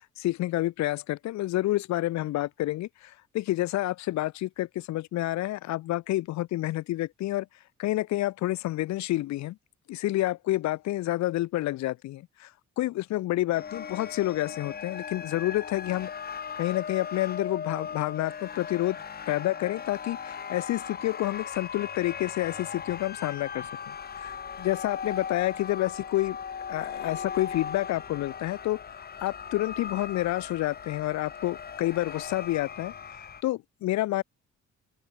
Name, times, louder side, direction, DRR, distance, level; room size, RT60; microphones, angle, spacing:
voice 1, 0.2-7.5 7.8-9.6 9.9-12.5 12.8-16.1 16.6-19.0 19.3-26.4 26.7-28.8 29.2-32.9 33.4-34.2, left 16 dB, 65° left, 0.5 m, -29 dB
sound 1, 13.5-33.4, left 7 dB, 30° left, 0.7 m, -38 dB
open air
cardioid pair, 90°, 30 cm